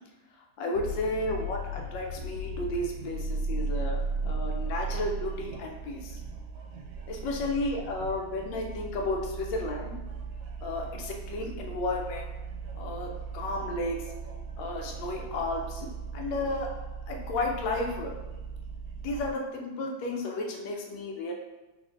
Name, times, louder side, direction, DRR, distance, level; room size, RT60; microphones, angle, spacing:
voice 1, 0.6-6.1 7.1-9.9 10.6-12.2 12.8-14.0 14.6-15.9 16.1-16.7 17.1-18.1 19.0-21.3, left 2 dB, 70° left, 1 dB, 1.2 m, -33 dB
sound 1, 0.7-19.3, right 3 dB, 75° right, 1.3 m, -37 dB
3.9 x 3.6 x 2.5 m, 1.1 s
omnidirectional pair, 2.3 m